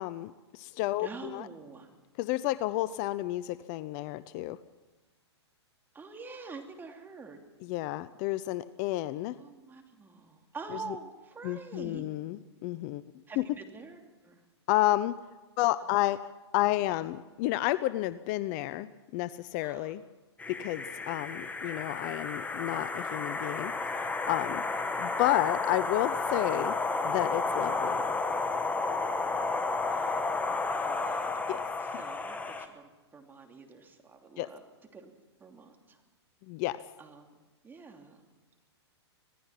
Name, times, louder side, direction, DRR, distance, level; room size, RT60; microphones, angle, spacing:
voice 1, 0.0-1.5 2.2-4.6 7.6-9.4 11.4-13.0 13.4-13.5 14.7-15.2 15.6-16.2 16.5-18.9 19.1-20.0 20.5-23.7 24.2-24.6 25.0-26.7 27.0-28.0 31.5-31.6 34.4-34.5 36.5-36.8, left 16 dB, 40° left, 16 dB, 0.7 m, -31 dB
voice 2, 1.0-1.9 5.9-7.4 9.4-12.0 13.3-14.4 19.6-19.9 29.9-30.3 30.8-31.3 31.8-34.6 34.9-35.1 35.4-36.0 37.0-37.3 37.6-38.2, right 4 dB, 15° right, 3 dB, 2.9 m, -46 dB
sound 1, 20.4-32.7, left 3 dB, 10° left, 1.6 m, -32 dB
26.0 x 17.5 x 5.9 m, 1.2 s
hypercardioid pair, 120°, 14 cm